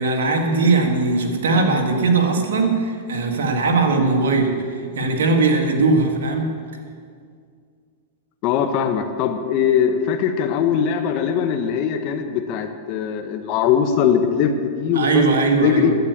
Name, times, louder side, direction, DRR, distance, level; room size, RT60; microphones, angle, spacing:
voice 1, 0.0-6.5 14.9-16.0, right 3 dB, 80° right, 3 dB, 1.9 m, -19 dB
voice 2, 8.4-15.2 15.6-15.9, left 8 dB, 45° left, 6 dB, 1.0 m, -21 dB
10.5 x 8.2 x 8.3 m, 2.2 s
hypercardioid pair, 130°, 0 cm